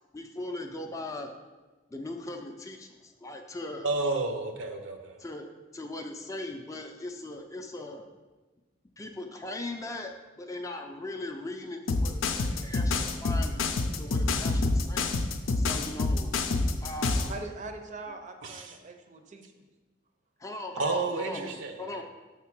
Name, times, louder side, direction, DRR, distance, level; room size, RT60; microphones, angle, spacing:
voice 1, 0.1-1.3 1.9-3.9 5.2-5.5 5.7-8.1 9.0-13.6 13.9-15.2 15.6-16.3 16.8-17.3 20.4-22.0, left 2 dB, 15° left, 4 dB, 0.4 m, -39 dB
voice 2, 3.8-5.2 18.4-18.8 20.8-22.0, right 3 dB, 70° right, 5 dB, 0.8 m, -31 dB
sound 1, 11.9-17.3, left 3 dB, 85° left, 0.5 m, -27 dB
voice 3, 17.3-19.4, right 2 dB, 40° right, 5 dB, 0.6 m, -41 dB
6.5 x 3.6 x 6.0 m, 1.2 s
head